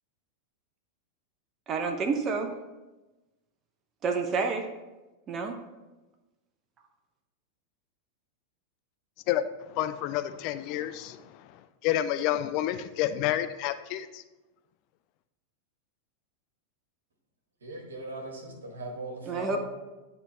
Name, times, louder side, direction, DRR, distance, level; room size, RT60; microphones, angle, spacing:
voice 1, 1.7-2.5 4.0-4.7 5.3-5.6 19.3-19.6, right 4 dB, 30° right, 5 dB, 0.6 m, -29 dB
voice 2, 9.3-14.2, left 12 dB, 45° left, 11 dB, 0.3 m, -30 dB
voice 3, 17.6-19.6, right 2 dB, 70° right, 1 dB, 1.3 m, -39 dB
9.8 x 3.4 x 3.2 m, 1.1 s
figure-of-eight pair, 90°, 0 cm